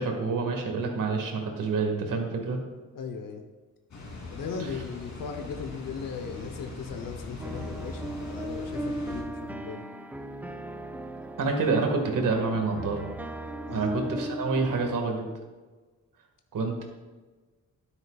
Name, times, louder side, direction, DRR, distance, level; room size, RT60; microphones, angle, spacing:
voice 1, 0.0-2.6 11.4-13.0 13.7-15.3 16.5-16.8, right 4 dB, 75° right, 3 dB, 2.0 m, -27 dB
voice 2, 2.9-3.4 4.3-9.9 13.7-13.9, left 5 dB, 90° left, 4 dB, 1.0 m, -38 dB
Water, 3.9-9.2, left 2 dB, 60° left, 3.2 m, -41 dB
sound 1, 7.4-15.0, right 1 dB, 5° right, 0.5 m, -37 dB
12.5 x 10.5 x 2.5 m, 1.3 s
wide cardioid pair, 125°, 32 cm